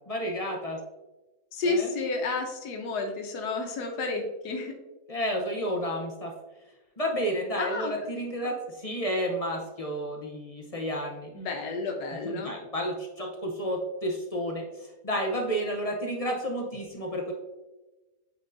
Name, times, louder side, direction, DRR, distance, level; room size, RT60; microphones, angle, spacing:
voice 1, 0.1-0.8 1.6-1.9 5.1-6.3 7.0-11.3 12.1-17.3, equal, 40° left, 1 dB, 0.5 m, -31 dB
voice 2, 1.5-4.7 7.6-7.9 8.4-8.5 11.3-12.5, left 3 dB, 85° left, 3 dB, 1.4 m, -31 dB
8.7 x 4.4 x 2.6 m, 1.1 s
omnidirectional pair, 1.7 m